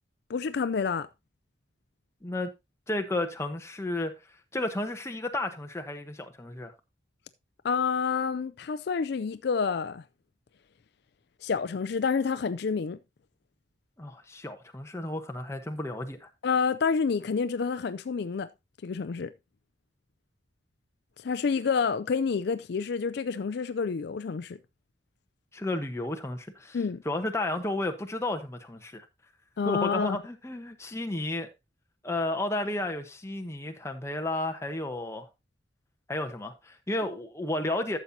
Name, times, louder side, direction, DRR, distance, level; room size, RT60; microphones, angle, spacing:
voice 1, 0.3-1.1 7.6-10.0 11.4-13.0 16.4-18.5 18.8-19.3 21.2-24.6 26.7-27.0 29.6-30.2, left 5 dB, 60° left, 0.4 m, -28 dB
voice 2, 2.9-4.1 4.5-6.7 14.0-16.3 25.5-26.8 27.0-29.1 29.6-31.5 32.0-35.3 36.1-38.0, left 2 dB, 15° left, 1.0 m, -32 dB
12.5 x 7.3 x 2.7 m
head